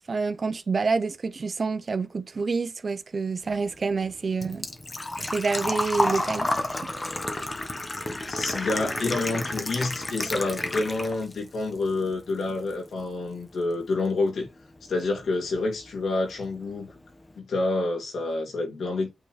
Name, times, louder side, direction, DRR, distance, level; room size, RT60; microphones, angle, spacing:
voice 1, 0.1-4.7 5.2-6.5 6.8-6.9, right 4 dB, 50° right, 0.8 m, -27 dB
Engine / Trickle dribble / Fill (with liquid), 3.5-11.4 11.7-12.7 13.0-13.1 15.0-15.1 15.3-15.6 16.0-16.1 16.3-16.4, left 2 dB, 30° left, 1.4 m, -30 dB
voice 2, 8.3-14.5 14.9-16.9 17.4-19.1, left 2 dB, 85° left, 2.8 m, -28 dB
8.9 x 4.2 x 3.4 m
cardioid pair, 80°, 0 cm